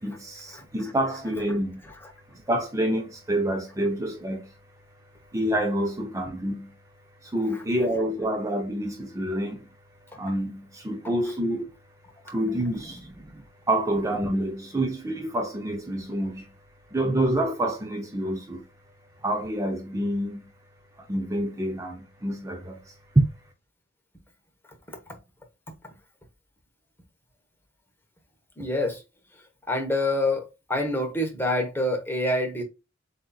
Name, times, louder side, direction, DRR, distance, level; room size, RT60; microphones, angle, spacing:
voice 1, 0.0-1.9 2.3-4.5 5.3-6.7 7.2-9.7 10.1-11.7 12.3-16.5 16.9-18.6 19.2-20.5 21.1-23.3, right 1 dB, 15° right, 0.6 m, -27 dB
voice 2, 28.6-29.0 29.7-32.6, left 1 dB, 10° left, 1.1 m, -26 dB
7.6 x 2.8 x 2.3 m
head